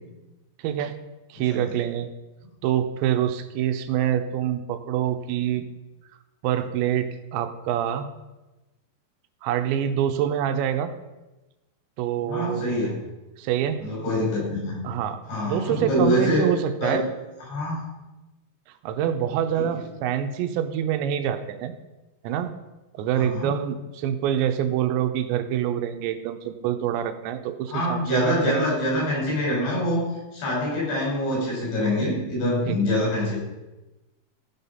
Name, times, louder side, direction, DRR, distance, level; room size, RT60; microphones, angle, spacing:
voice 1, 0.6-1.0 1.3-2.1 2.6-5.6 6.4-8.1 9.4-10.9 12.0-12.8 13.4-13.8 14.8-17.1 18.8-21.7 22.2-22.5 22.9-28.6 32.7-32.8, right 10 dB, 85° right, 9 dB, 3.0 m, -26 dB
voice 2, 12.2-12.9 13.8-14.8 15.3-16.5 16.8-17.0 17.5-17.8 19.5-19.7 23.1-23.5 27.7-30.0 30.3-33.4, left 1 dB, 80° left, -4 dB, 7.3 m, -25 dB
15.5 x 5.8 x 5.4 m, 1.1 s
omnidirectional pair, 5.1 m